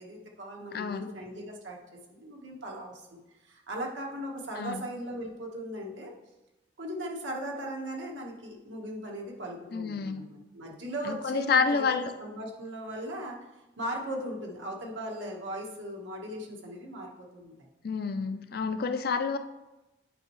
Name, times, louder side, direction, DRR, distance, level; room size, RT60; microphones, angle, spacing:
voice 1, 0.0-1.8 2.1-6.1 6.8-13.4 13.8-17.5, right 1 dB, 90° right, -1 dB, 1.4 m, -38 dB
voice 2, 0.7-1.1 4.6-4.8 9.7-10.3 11.0-12.1 17.8-19.4, left 5 dB, 55° left, 9 dB, 0.4 m, -29 dB
9.0 x 5.4 x 3.1 m, 1.0 s
head